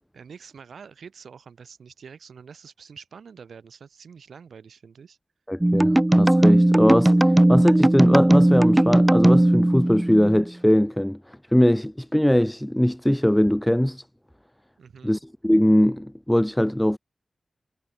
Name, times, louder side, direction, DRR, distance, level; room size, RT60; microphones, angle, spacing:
voice 1, 0.1-5.2 14.8-15.1, right 6 dB, 90° right, 4.3 m, -46 dB
voice 2, 5.5-14.0 15.0-17.0, equal, 5° left, 1.4 m, -21 dB
sound 1, 5.6-10.4, right 1 dB, 15° right, 0.4 m, -17 dB
cardioid pair, 60°, 0 cm